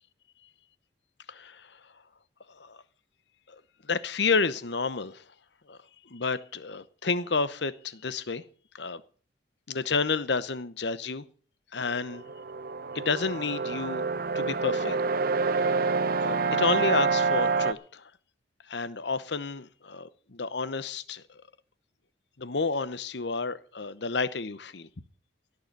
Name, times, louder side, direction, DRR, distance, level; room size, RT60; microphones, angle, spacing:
voice 1, 1.3-1.7 2.6-2.8 3.5-3.6 3.9-5.2 5.7-5.8 6.1-8.4 8.8-9.0 9.7-11.2 11.7-12.2 12.9-14.1 14.3-15.0 15.5-15.7 16.2-18.0 18.7-21.2 22.4-24.9, left 4 dB, 65° left, 0.9 m, -30 dB
sound 1, 11.8-17.7, right 4 dB, 50° right, 0.7 m, -27 dB
16.5 x 6.7 x 7.6 m
head